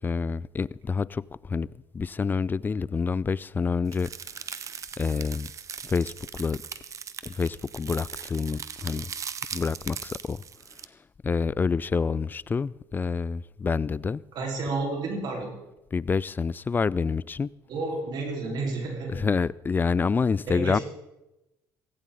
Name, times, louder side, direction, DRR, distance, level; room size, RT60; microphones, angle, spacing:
voice 1, 0.0-1.7 1.9-4.1 5.0-5.5 5.8-6.6 7.3-9.1 9.5-10.4 11.2-14.2 15.9-17.5 19.1-20.8, left 5 dB, 25° left, 0.4 m, -27 dB
sound 1, 3.9-10.9, right 7 dB, 40° right, 0.9 m, -39 dB
voice 2, 14.3-15.6 17.7-19.3 20.5-20.8, right 3 dB, 60° right, 4.1 m, -31 dB
16.5 x 16.0 x 3.9 m
supercardioid pair, 90°, 8 cm